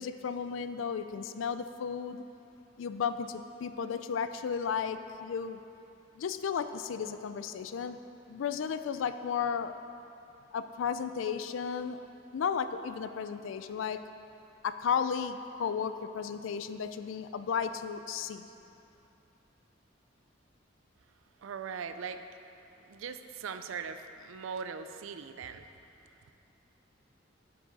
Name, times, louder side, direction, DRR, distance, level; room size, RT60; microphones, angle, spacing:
voice 1, 0.0-2.2 2.8-5.6 6.2-8.0 8.3-9.7 10.5-12.0 12.3-14.0 14.6-18.5, left 6 dB, 80° left, 11 dB, 0.3 m, -34 dB
voice 2, 21.4-22.2 22.9-25.7, right 6 dB, 85° right, 9 dB, 0.4 m, -40 dB
9.4 x 5.9 x 4.0 m, 2.8 s
head